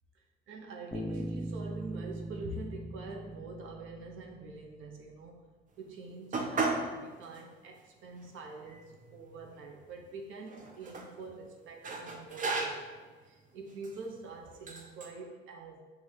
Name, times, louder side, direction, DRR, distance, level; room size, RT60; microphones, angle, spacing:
voice 1, 0.1-5.5 5.8-15.8, right 3 dB, 85° right, 1 dB, 0.7 m, -45 dB
Bass guitar, 0.9-4.7, right 1 dB, 10° left, 0.7 m, -40 dB
sound 1, 6.3-6.9 7.3-7.4 8.2-8.3 8.6-9.6 10.5-11.1 11.8-13.0 13.7-14.0 14.7-15.1, right 3 dB, 40° right, 0.5 m, -35 dB
5.5 x 2.3 x 3.3 m, 1.4 s
cardioid pair, 90°, 20 cm